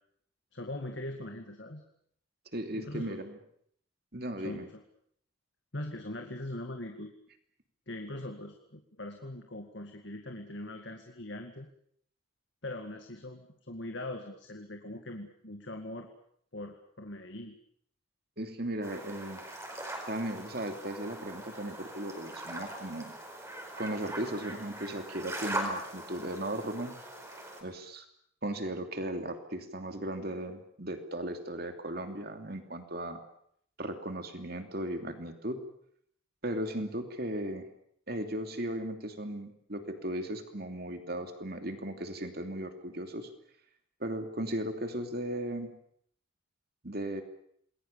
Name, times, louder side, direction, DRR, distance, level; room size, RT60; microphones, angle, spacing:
voice 1, 0.5-1.8 2.7-3.1 4.4-4.8 5.7-7.1 7.9-11.7 12.6-16.1 16.5-17.6, left 1 dB, 60° left, 4 dB, 2.1 m, -41 dB
voice 2, 2.5-3.3 4.1-4.7 18.4-19.4 20.1-23.1 23.8-27.0 27.6-28.0 28.4-33.2 33.8-35.6 36.4-37.7 38.1-43.3 44.0-45.7 46.8-47.2, right 1 dB, 50° right, 6 dB, 2.8 m, -36 dB
Autumn beach sound, 18.8-27.6, right 1 dB, 15° right, 4.8 m, -41 dB
27.5 x 21.0 x 7.0 m, 0.67 s
head